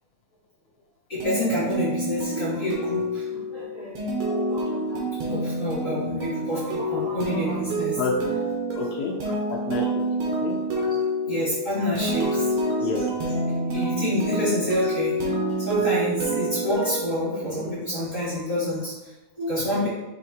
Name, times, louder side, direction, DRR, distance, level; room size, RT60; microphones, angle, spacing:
voice 1, 1.1-3.9 4.3-8.0 10.7-11.0 11.3-12.5 13.7-15.2 15.6-19.9, left 1 dB, 30° left, -9 dB, 1.9 m, -28 dB
sound 1, 1.2-17.9, right 1 dB, 75° right, 2.7 m, -28 dB
voice 2, 8.0-8.3 8.7-9.9 10.4-10.5 12.8-13.0 19.8-19.9, left 5 dB, 75° left, -1 dB, 1.5 m, -29 dB
5.7 x 3.8 x 4.4 m, 1.0 s
omnidirectional pair, 3.6 m